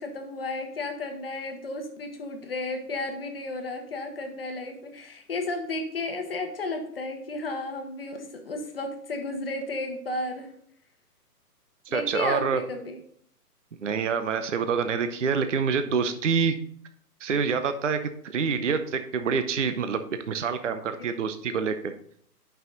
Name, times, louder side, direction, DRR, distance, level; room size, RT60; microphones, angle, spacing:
voice 1, 0.0-10.5 11.9-13.0 21.0-21.2, left 2 dB, 35° left, 4 dB, 1.1 m, -33 dB
voice 2, 11.9-12.6 13.8-16.6 17.2-21.9, right 6 dB, 50° right, 9 dB, 0.6 m, -26 dB
8.6 x 5.6 x 3.8 m, 0.63 s
hypercardioid pair, 170°, 48 cm